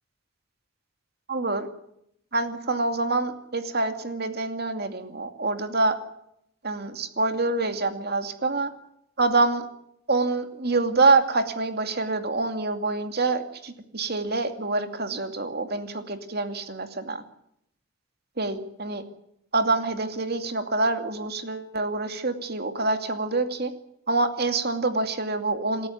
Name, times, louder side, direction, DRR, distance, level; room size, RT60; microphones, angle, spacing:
voice 1, 1.3-1.7 2.3-6.0 6.6-8.7 9.2-9.7 10.1-17.2 18.4-19.0 19.5-23.7 24.1-25.9, right 3 dB, 50° right, 7 dB, 2.5 m, -26 dB
28.5 x 14.0 x 9.5 m, 0.76 s
head